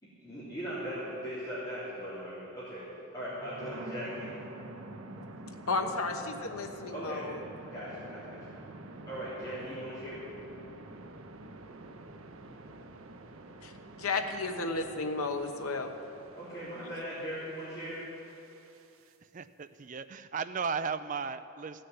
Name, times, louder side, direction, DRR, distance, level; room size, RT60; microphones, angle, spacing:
voice 1, 0.0-2.8 3.1-4.4 6.9-7.2 7.7-8.5 9.1-10.2 16.3-18.0, equal, 15° left, -11 dB, 3.4 m, -39 dB
sound 1, 3.2-19.1, right 2 dB, 75° right, 0.8 m, -48 dB
voice 2, 5.7-7.4 13.6-15.9, left 3 dB, 90° left, 5 dB, 1.1 m, -33 dB
voice 3, 19.3-21.9, right 5 dB, 35° right, 12 dB, 0.4 m, -35 dB
15.5 x 6.6 x 9.5 m, 2.8 s
head